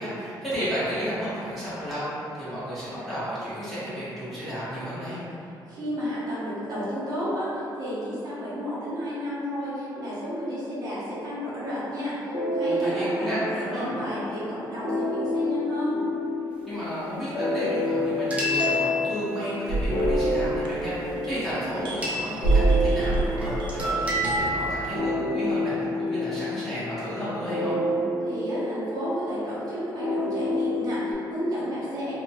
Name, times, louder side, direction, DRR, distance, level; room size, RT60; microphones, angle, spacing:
voice 1, 0.0-5.2 12.6-13.9 16.6-27.8, equal, ahead, -14 dB, 1.0 m, -32 dB
voice 2, 5.7-16.0 28.2-32.1, equal, 50° right, -10 dB, 0.8 m, -32 dB
sound 1, 12.3-31.1, left 1 dB, 75° left, 0.7 m, -29 dB
sound 2, 18.3-19.4 22.0-22.8 23.4-23.5 23.7-25.0, left 1 dB, 15° right, 0.4 m, -28 dB
sound 3, 19.7-21.3 21.6-24.7, right 2 dB, 80° right, 0.4 m, -26 dB
2.8 x 2.1 x 2.8 m, 2.8 s
cardioid pair, 155°, 8 cm